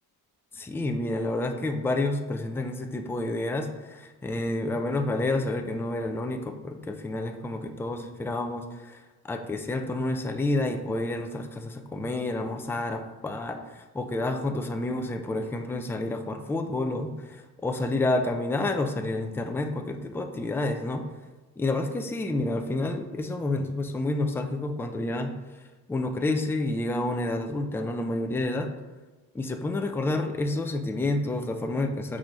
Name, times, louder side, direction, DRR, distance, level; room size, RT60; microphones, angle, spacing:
voice 1, 0.5-21.1 21.6-25.3 25.9-28.7 29.3-32.2, left 2 dB, 5° left, 5 dB, 0.4 m, -29 dB
6.2 x 4.1 x 5.0 m, 1.2 s
cardioid pair, 130°, 37 cm